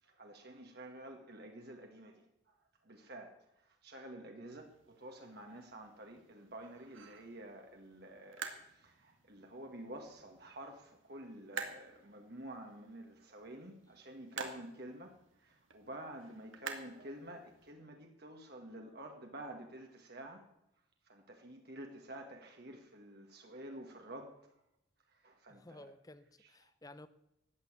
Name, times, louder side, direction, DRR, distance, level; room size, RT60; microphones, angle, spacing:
voice 1, 0.0-20.5 21.0-24.5 25.1-25.9 26.4-26.7, right 1 dB, 55° right, 3 dB, 1.9 m, -50 dB
sound 1, 4.5-17.7, right 5 dB, 80° right, 2.0 m, -50 dB
voice 2, 25.5-27.1, left 1 dB, 20° left, 13 dB, 0.8 m, -54 dB
15.0 x 9.8 x 8.3 m, 0.84 s
head